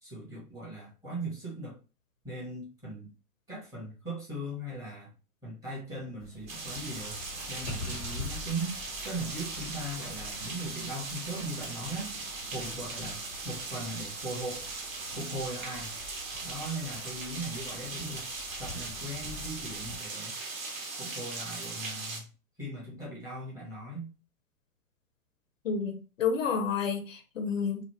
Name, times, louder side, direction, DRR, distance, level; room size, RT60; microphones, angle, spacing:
voice 1, 0.0-1.8 2.2-3.1 3.5-5.1 5.4-7.2 7.5-8.8 9.0-12.2 12.4-14.7 15.1-15.9 16.4-18.3 18.6-20.4 21.0-22.2 22.6-24.1, right 1 dB, 5° right, -6 dB, 0.8 m, -39 dB
sound 1, 6.2-19.9, left 2 dB, 10° left, 0.4 m, -46 dB
sound 2, 6.5-22.2, right 3 dB, 60° right, 1.0 m, -39 dB
voice 2, 25.6-27.8, left 6 dB, 60° left, 5 dB, 0.6 m, -30 dB
2.9 x 2.1 x 3.0 m, 0.33 s
figure-of-eight pair, 115°, 46 cm